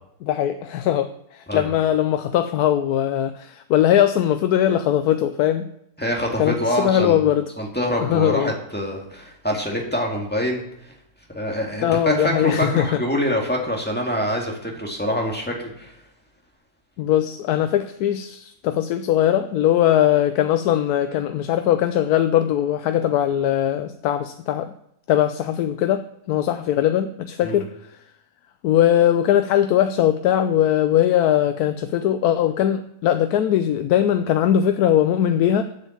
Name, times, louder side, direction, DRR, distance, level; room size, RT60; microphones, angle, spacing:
voice 1, 0.2-5.6 6.4-7.5 8.0-8.5 11.8-13.0 17.0-24.7 25.1-28.0 28.6-35.7, left 11 dB, 90° left, 9 dB, 1.1 m, -20 dB
voice 2, 6.0-7.3 7.6-10.6 11.3-15.9 27.4-27.6, equal, 5° left, -1 dB, 1.9 m, -25 dB
8.1 x 7.4 x 7.2 m, 0.76 s
omnidirectional pair, 1.6 m